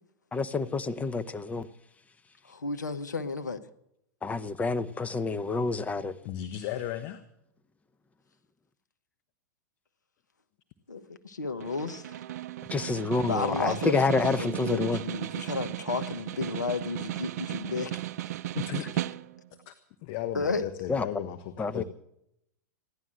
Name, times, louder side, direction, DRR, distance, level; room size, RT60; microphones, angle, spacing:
voice 1, 0.3-1.7 4.2-6.1 12.7-15.0 20.9-21.0 21.6-21.8, left 4 dB, 15° left, 0.8 m, -28 dB
voice 2, 2.4-3.6 10.9-12.2 13.2-18.0 20.3-20.7, left 4 dB, 85° left, 1.1 m, -33 dB
voice 3, 6.2-7.2 14.2-14.4 18.5-19.1 19.7-19.8 20.0-21.8, left 12 dB, 50° left, 1.1 m, -36 dB
Snare drum, 11.6-19.5, right 14 dB, 65° right, 0.5 m, -36 dB
16.0 x 11.0 x 7.6 m
hypercardioid pair, 105°, 9 cm